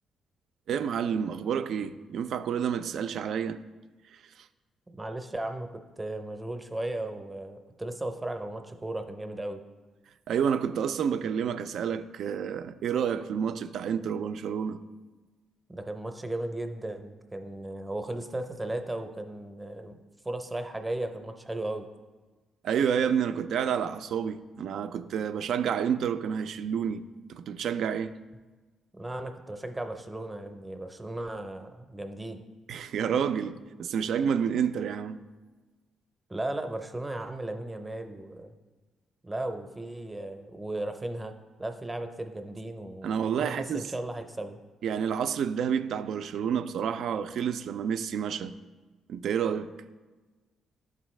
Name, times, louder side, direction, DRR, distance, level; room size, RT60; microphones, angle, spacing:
voice 1, 0.7-3.6 10.3-14.8 22.6-28.1 32.7-35.3 43.0-43.9 44.8-48.6 49.1-49.8, right 7 dB, 70° right, 0.3 m, -29 dB
voice 2, 5.0-5.7 6.0-9.6 15.7-20.0 20.2-21.9 28.9-32.4 36.3-38.5 39.2-41.3 41.6-44.6, right 1 dB, 15° right, 0.6 m, -36 dB
11.0 x 4.0 x 3.1 m
cardioid pair, 90°, 0 cm